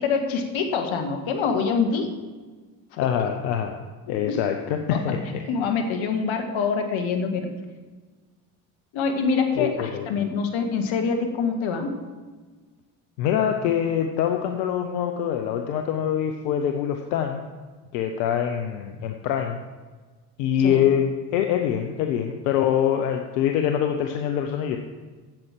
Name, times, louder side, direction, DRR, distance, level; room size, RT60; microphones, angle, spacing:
voice 1, 0.0-2.1 4.9-5.0 5.5-7.5 8.9-11.9 20.6-20.8, left 5 dB, 70° left, 5 dB, 1.8 m, -25 dB
voice 2, 3.0-3.8 4.1-5.2 9.6-10.1 13.2-17.4 17.9-19.6 20.4-24.8, left 9 dB, 90° left, 5 dB, 0.8 m, -24 dB
9.0 x 7.8 x 7.5 m, 1.4 s
hypercardioid pair, 60°, 49 cm